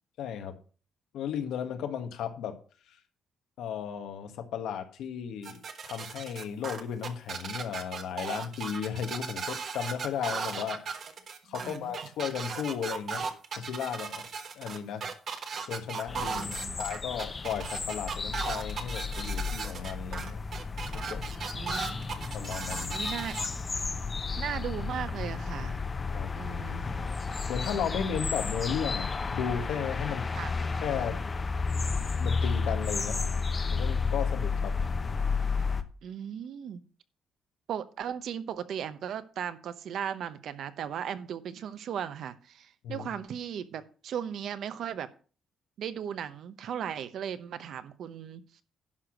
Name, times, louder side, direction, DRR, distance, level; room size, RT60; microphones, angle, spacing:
voice 1, 0.2-0.6 1.1-2.5 2.9-3.0 3.6-10.8 11.4-13.3 13.5-14.2 14.5-15.0 15.6-20.4 20.9-21.2 22.3-22.9 26.1-26.3 27.5-30.2 30.6-31.2 32.2-33.2 33.7-34.7 42.8-43.1, left 8 dB, 90° left, 7 dB, 1.5 m, -35 dB
sound 1, 5.4-23.5, right 5 dB, 45° right, 1.3 m, -37 dB
voice 2, 11.6-11.9 16.3-16.8 21.5-22.0 22.9-23.3 24.4-25.8 26.3-26.8 30.4-30.5 36.0-36.8 37.7-45.1 45.8-48.4, right 8 dB, 65° right, 12 dB, 0.9 m, -37 dB
sound 2, 16.1-35.8, left 4 dB, 25° left, 0.8 m, -32 dB
11.0 x 4.8 x 6.4 m, 0.38 s
cardioid pair, 150°, 0 cm